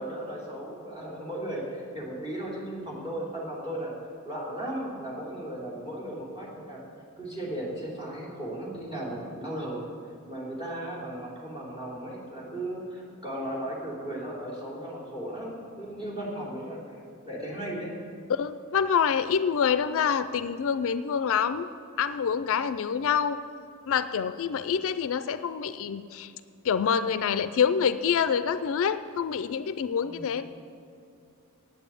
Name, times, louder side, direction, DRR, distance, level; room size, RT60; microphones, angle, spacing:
voice 1, 0.0-3.9 4.2-6.8 7.2-9.8 10.3-17.9 30.0-30.3, right 1 dB, 20° right, -4 dB, 3.1 m, -36 dB
voice 2, 18.3-21.7 22.0-23.4 23.9-26.3 26.6-30.5, left 7 dB, 60° left, 13 dB, 0.4 m, -26 dB
9.1 x 8.5 x 8.3 m, 2.5 s
head